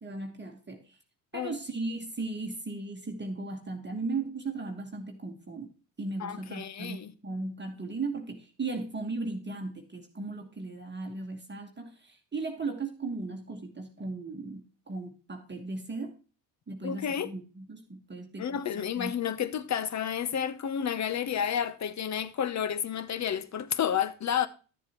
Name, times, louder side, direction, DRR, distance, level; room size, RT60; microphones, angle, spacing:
voice 1, 0.0-1.0 1.3-5.7 6.0-16.2 16.7-19.1, right 3 dB, 20° right, 1.4 m, -37 dB
voice 2, 6.2-7.1 16.8-17.3 18.4-24.5, left 9 dB, 35° left, 0.8 m, -31 dB
12.5 x 7.2 x 3.0 m
supercardioid pair, 75°, 50 cm